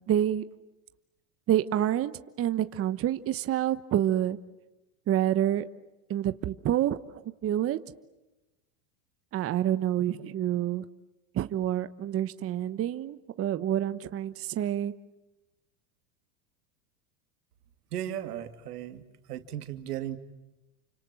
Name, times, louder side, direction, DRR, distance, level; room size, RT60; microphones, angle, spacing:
voice 1, 0.1-0.4 1.5-2.1 2.4-4.4 5.1-5.7 6.1-7.0 7.4-7.8 9.3-10.9 11.3-14.9, right 11 dB, 30° right, 11 dB, 1.1 m, -27 dB
voice 2, 17.9-19.0 19.3-20.2, right 11 dB, 85° right, 8 dB, 2.6 m, -36 dB
30.0 x 26.0 x 7.6 m, 1.0 s
supercardioid pair, 120°, 45 cm